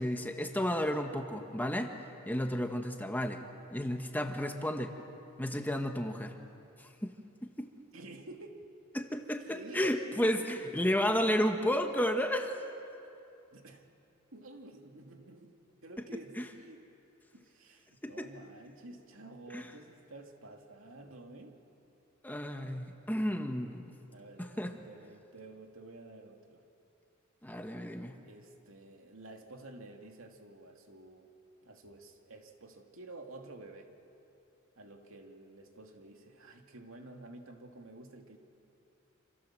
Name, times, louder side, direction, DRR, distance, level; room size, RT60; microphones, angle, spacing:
voice 1, 0.0-1.9 2.3-3.4 3.7-4.9 5.4-6.4 6.8-7.1 7.6-7.7 8.9-12.6 16.4-16.5 18.0-18.3 19.5-19.7 22.2-23.9 24.4-24.7 27.4-28.1, equal, 10° left, 5 dB, 1.3 m, -32 dB
voice 2, 7.9-8.6 9.5-10.3 13.5-13.9 14.3-15.5 15.8-16.9 17.3-21.5 24.1-26.6 28.2-31.3 31.6-33.9 34.8-38.4, right 2 dB, 75° right, 3 dB, 2.6 m, -50 dB
28.5 x 27.0 x 7.5 m, 2.7 s
head